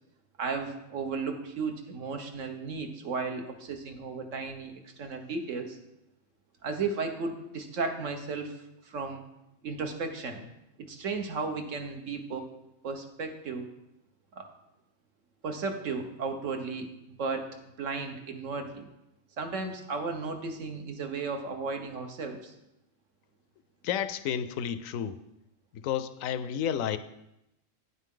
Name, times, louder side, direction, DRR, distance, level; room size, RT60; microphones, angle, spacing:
voice 1, 0.4-5.8 6.6-9.2 9.6-10.4 10.8-12.5 12.8-13.7 14.3-14.5 15.4-17.5 17.8-18.9 19.4-22.5, right 4 dB, 70° right, 5 dB, 1.4 m, -34 dB
voice 2, 23.8-25.2 25.7-27.0, left 9 dB, 85° left, 13 dB, 1.0 m, -31 dB
9.3 x 8.3 x 3.8 m, 0.87 s
omnidirectional pair, 1.4 m